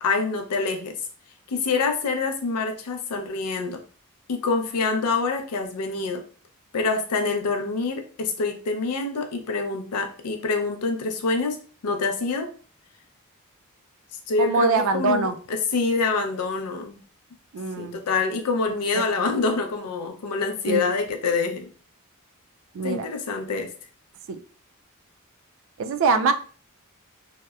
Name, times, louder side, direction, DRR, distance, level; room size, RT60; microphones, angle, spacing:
voice 1, 0.0-0.9 1.5-3.8 4.3-6.2 6.7-11.6 11.8-12.5 14.3-17.0 17.8-21.7 22.8-23.7, left 4 dB, 90° left, 5 dB, 0.5 m, -26 dB
voice 2, 14.4-15.4 17.5-18.0 18.9-19.0 20.7-20.9 22.7-23.1 24.3-24.4 25.8-26.3, right 4 dB, 60° right, 9 dB, 0.3 m, -23 dB
2.7 x 2.1 x 2.3 m, 0.40 s
head